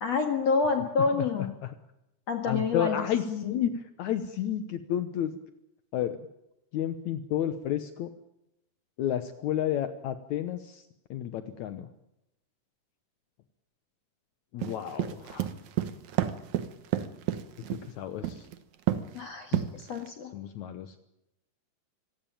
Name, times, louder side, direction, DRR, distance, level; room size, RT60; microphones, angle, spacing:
voice 1, 0.0-1.5 2.3-3.6 19.1-20.3, left 4 dB, 50° left, 5 dB, 2.3 m, -28 dB
voice 2, 2.4-5.4 5.9-6.2 6.7-8.1 9.0-10.8 11.1-11.9 14.5-15.5 17.7-18.5 19.5-19.7 20.3-21.0, left 10 dB, 80° left, 10 dB, 1.7 m, -31 dB
sound 1, 14.6-17.9 18.2-18.6 18.9-19.2 19.5-20.1, right 12 dB, 65° right, 2.0 m, -29 dB
25.5 x 16.5 x 8.9 m, 0.87 s
omnidirectional pair, 4.7 m